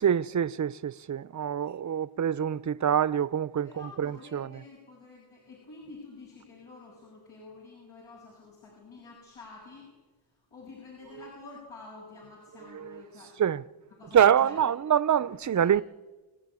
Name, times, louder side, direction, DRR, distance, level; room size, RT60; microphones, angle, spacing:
voice 1, 0.0-3.7 4.0-4.5 12.7-12.8 13.4-13.6 14.1-15.8, right 9 dB, 35° right, 0.7 m, -25 dB
voice 2, 3.6-9.9 10.5-13.4 14.0-14.7 15.4-15.8, left 3 dB, 75° left, 7.1 m, -49 dB
25.5 x 15.5 x 9.7 m
cardioid pair, 85°, 49 cm